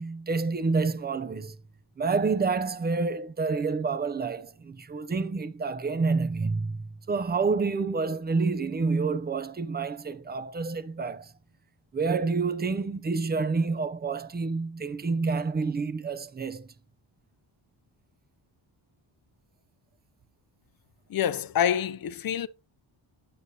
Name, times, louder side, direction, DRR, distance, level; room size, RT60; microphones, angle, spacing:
voice 1, 0.0-1.6 2.0-11.3 11.9-16.7, right 4 dB, 20° right, 0.5 m, -28 dB
voice 2, 21.1-22.5, left 9 dB, 45° left, 0.6 m, -26 dB
8.5 x 8.2 x 2.7 m
wide cardioid pair, 130°, 49 cm